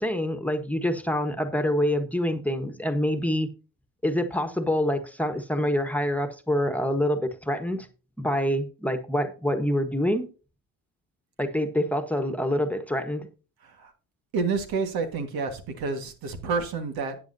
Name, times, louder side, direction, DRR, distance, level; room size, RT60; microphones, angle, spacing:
voice 1, 0.0-3.5 4.0-7.9 8.2-10.3 11.4-13.3, equal, 5° left, 1.3 m, -26 dB
voice 2, 14.3-17.2, right 4 dB, 85° right, 1.8 m, -29 dB
13.0 x 8.7 x 2.7 m
cardioid pair, 75°, 35 cm